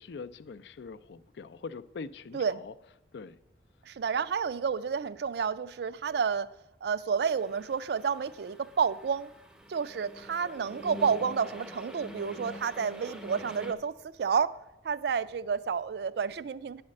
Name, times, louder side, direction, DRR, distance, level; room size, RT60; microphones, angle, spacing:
voice 1, 0.0-2.7 3.1-3.4, left 4 dB, 70° left, 0.4 m, -43 dB
voice 2, 3.9-6.5 6.8-9.3 9.7-14.6 14.8-16.8, right 6 dB, 60° right, 0.3 m, -30 dB
sound 1, 7.4-13.7, equal, 5° right, 0.5 m, -46 dB
9.6 x 4.3 x 7.5 m
head